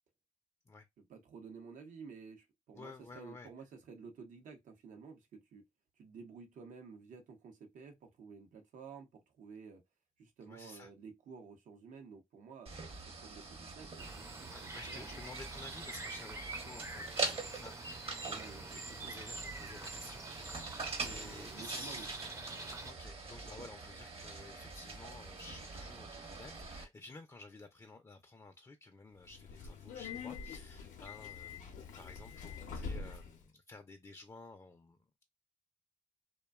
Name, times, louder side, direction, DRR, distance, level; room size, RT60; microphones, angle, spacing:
voice 1, 1.0-5.7 6.0-9.8 10.2-12.7 13.1-14.1 14.4-14.5 14.9-15.2 18.2-18.7 19.0-19.1 21.0-22.1 23.4-23.7, right 5 dB, 80° right, 0.7 m, -52 dB
voice 2, 2.7-3.5 10.5-10.9 14.4-22.1 22.8-35.2, left 3 dB, 25° left, 0.4 m, -53 dB
sound 1, 12.7-26.8, right 3 dB, 50° right, 0.8 m, -44 dB
sound 2, 14.0-22.9, right 3 dB, 25° right, 0.5 m, -46 dB
Subway metro underground, 29.2-33.4, left 5 dB, 80° left, 0.5 m, -45 dB
2.5 x 2.2 x 2.3 m
cardioid pair, 65°, 13 cm